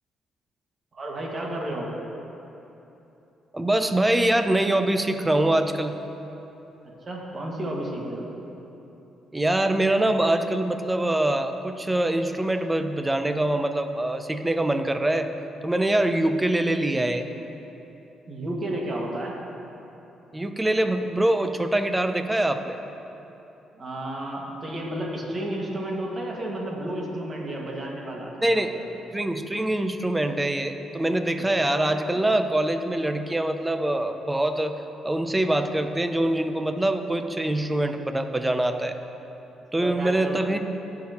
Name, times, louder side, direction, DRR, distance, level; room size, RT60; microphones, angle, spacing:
voice 1, 0.9-1.9 7.1-8.3 18.3-19.4 23.7-28.8 39.8-40.4, right 1 dB, 40° right, -2 dB, 1.9 m, -32 dB
voice 2, 3.5-6.0 9.3-15.3 15.6-17.3 20.3-22.8 28.4-28.7 29.1-34.8 35.0-39.0 39.7-40.7, right 1 dB, 15° right, 8 dB, 0.6 m, -24 dB
17.0 x 5.8 x 3.0 m, 3.0 s
cardioid pair, 90°, 0 cm